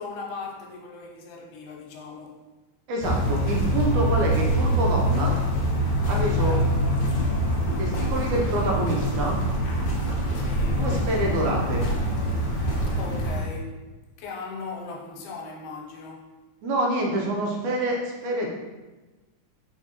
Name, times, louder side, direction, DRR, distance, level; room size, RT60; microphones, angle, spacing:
voice 1, 0.0-2.4 6.4-6.7 10.3-10.8 12.9-13.8 14.2-16.4, left 4 dB, 85° left, 0 dB, 2.2 m, -38 dB
voice 2, 2.9-5.4 6.1-6.6 7.7-9.4 10.7-11.9 16.6-18.5, right 1 dB, 80° right, -1 dB, 2.1 m, -27 dB
sound 1, 3.0-13.4, equal, 65° left, 1.4 m, -24 dB
5.0 x 3.4 x 2.8 m, 1.2 s
omnidirectional pair, 3.5 m